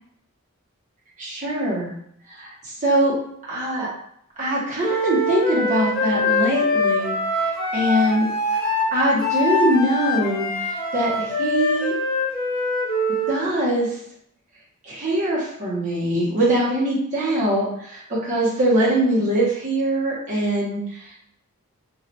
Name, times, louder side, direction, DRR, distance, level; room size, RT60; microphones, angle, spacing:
voice 1, 1.2-1.9 2.3-3.1 3.5-3.9 4.4-7.1 7.4-8.3 8.9-11.9 13.3-14.0 14.8-21.2, right 1 dB, 35° right, -7 dB, 1.1 m, -22 dB
Wind instrument woodwind instrument, 4.8-13.3, left 2 dB, 40° left, 0.8 m, -23 dB
3.1 x 2.6 x 2.9 m, 0.71 s
head